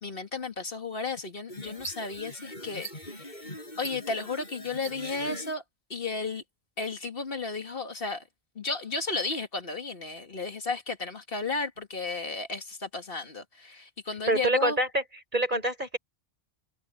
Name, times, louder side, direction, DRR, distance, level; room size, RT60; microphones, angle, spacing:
voice 1, 0.0-5.6 5.9-6.4 6.8-8.2 8.6-14.8, left 4 dB, 65° left, 2.1 m, -34 dB
sound 1, 1.5-5.5, equal, 45° left, 7.6 m, -41 dB
voice 2, 14.3-15.0 15.3-16.0, right 1 dB, 50° right, 5.1 m, -25 dB
omnidirectional pair, 1.0 m